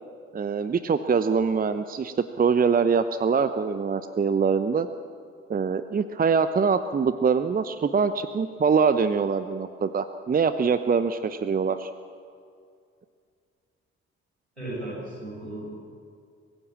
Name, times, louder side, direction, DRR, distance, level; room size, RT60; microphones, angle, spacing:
voice 1, 0.3-4.9 5.5-11.9, right 5 dB, 25° right, 11 dB, 0.8 m, -24 dB
voice 2, 14.6-15.8, right 1 dB, 90° right, -7 dB, 7.0 m, -35 dB
25.0 x 16.0 x 7.4 m, 2.3 s
figure-of-eight pair, 40°, 33 cm